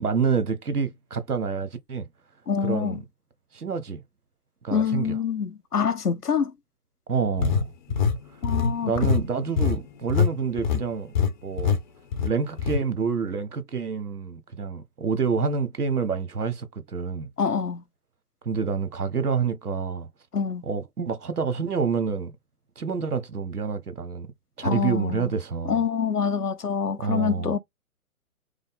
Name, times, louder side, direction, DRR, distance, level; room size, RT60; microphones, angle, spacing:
voice 1, 0.0-2.0 2.6-3.0 3.5-4.0 4.6-5.2 7.1-7.6 8.8-11.1 11.4-11.8 12.2-17.3 18.4-20.1 20.6-22.3 22.8-24.3 24.6-25.8 27.0-27.6, right 5 dB, 80° right, 1.1 m, -27 dB
voice 2, 2.5-3.0 4.7-6.5 8.4-9.1 17.4-17.8 20.3-20.6 24.6-25.3 25.7-27.6, left 6 dB, 85° left, 0.9 m, -26 dB
sound 1, 7.4-10.3 10.6-10.8 11.1-11.3 11.6-11.8 12.1-12.8, left 6 dB, 30° left, 0.8 m, -23 dB
5.1 x 2.0 x 3.5 m
figure-of-eight pair, 135°, 45 cm